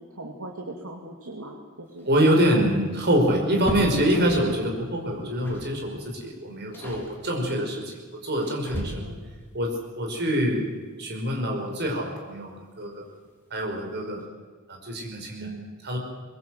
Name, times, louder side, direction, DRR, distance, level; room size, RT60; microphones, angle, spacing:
voice 1, 0.0-2.1 2.5-2.6 8.7-9.3 15.4-15.7, right 2 dB, 85° right, 1 dB, 2.5 m, -39 dB
sound 1, 1.9-4.6 5.4-5.8 6.1-6.3 6.7-7.1 7.9-9.4 11.2-11.3 11.6-11.7 12.9-13.3 13.7-13.8 14.1-14.3, equal, 10° left, 3.7 m, -37 dB
voice 2, 2.0-9.1 9.5-10.7 11.0-13.1 13.5-14.2 14.7-15.5 15.8-16.0, equal, 50° right, 1 dB, 5.4 m, -25 dB
23.0 x 22.0 x 7.9 m, 1.4 s
head